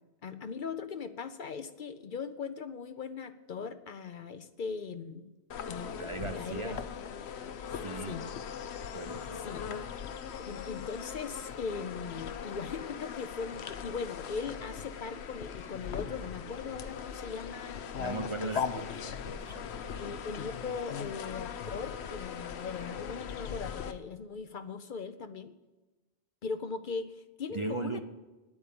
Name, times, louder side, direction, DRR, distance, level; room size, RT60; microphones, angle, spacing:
voice 1, 0.2-5.3 5.7-6.8 8.1-8.2 9.3-9.7 10.5-17.8 18.4-18.5 20.0-25.5 26.4-28.0, left 5 dB, 55° left, 10 dB, 0.7 m, -39 dB
sound 1, 5.5-23.9, left 7 dB, 80° left, 1.0 m, -40 dB
voice 2, 6.0-6.8 7.8-8.3 8.9-9.5 18.0-19.8 27.5-28.0, right 3 dB, 35° right, 7 dB, 0.6 m, -38 dB
10.0 x 8.7 x 8.5 m, 1.1 s
omnidirectional pair, 1.1 m